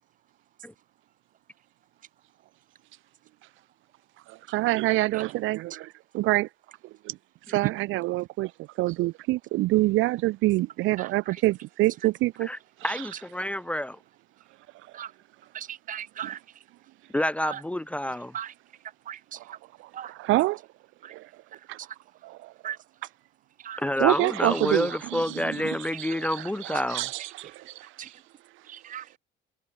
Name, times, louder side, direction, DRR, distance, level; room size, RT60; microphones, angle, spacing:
voice 1, 4.3-6.5 7.0-7.2 7.5-8.5 8.8-12.5 12.8-13.0 16.2-16.3 19.3-19.5 19.8-20.6 21.1-21.3 21.7-21.8 22.2-22.5 24.0-28.2, right 19 dB, 80° right, 0.5 m, -27 dB
voice 2, 12.8-13.9 17.1-18.3 23.8-27.1, left 1 dB, 5° left, 0.5 m, -28 dB
voice 3, 15.5-16.4 17.4-17.6 18.3-18.5 19.1-19.4 19.9-20.1 21.0-21.1 21.8-21.9 22.6-22.8 23.6-23.8 28.0-28.1 28.7-29.2, right 10 dB, 40° right, 1.0 m, -37 dB
cardioid pair, 160°, 20 cm